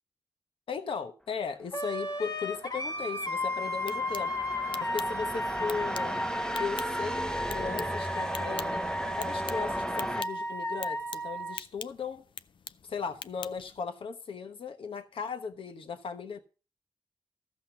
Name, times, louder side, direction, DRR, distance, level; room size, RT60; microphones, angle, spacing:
voice 1, 0.7-4.3 4.8-6.2 6.6-7.2 7.5-8.8 9.2-12.2 12.8-16.4, left 5 dB, 85° left, 1.0 m, -37 dB
Wind instrument woodwind instrument, 1.7-11.6, equal, 50° left, 1.5 m, -34 dB
sound 1, 2.3-10.2, left 1 dB, 10° left, 0.6 m, -37 dB
sound 2, 3.6-13.8, left 6 dB, 70° left, 0.4 m, -46 dB
14.0 x 5.8 x 5.7 m
cardioid pair, 55°, 9 cm